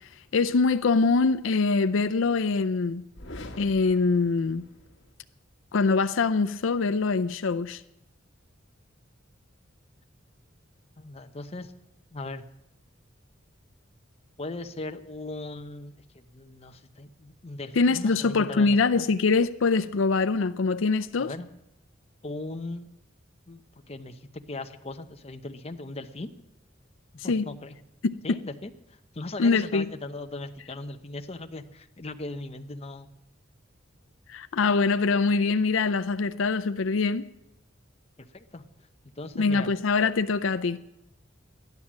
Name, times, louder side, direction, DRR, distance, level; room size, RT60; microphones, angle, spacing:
voice 1, 0.3-3.1 3.6-4.7 5.7-7.8 17.8-21.3 27.3-27.5 28.0-28.4 29.4-29.8 34.3-37.3 39.4-40.8, left 4 dB, 85° left, 0.5 m, -24 dB
sound 1, 3.1-5.1, left 1 dB, 70° left, 1.6 m, -45 dB
voice 2, 11.0-11.7 12.1-12.4 14.4-19.1 21.2-21.5 22.2-22.9 23.5-23.6 23.9-26.3 27.2-27.8 28.2-28.7 29.1-33.1 38.3-38.6 39.2-39.7, left 2 dB, 30° left, 0.8 m, -38 dB
13.0 x 10.5 x 7.3 m
head